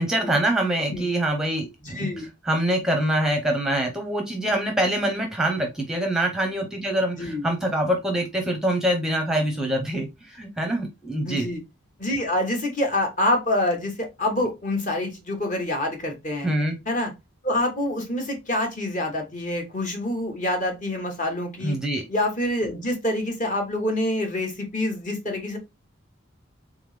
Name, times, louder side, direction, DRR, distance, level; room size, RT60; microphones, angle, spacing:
voice 1, 0.0-2.1 2.4-11.4 16.4-16.7 21.6-22.0, right 1 dB, 5° right, 0.7 m, -24 dB
voice 2, 1.8-2.3 7.2-7.5 11.2-11.6 12.0-16.5 16.9-17.1 17.4-21.8 22.1-25.6, left 1 dB, 40° left, 1.2 m, -26 dB
3.7 x 3.4 x 3.2 m
head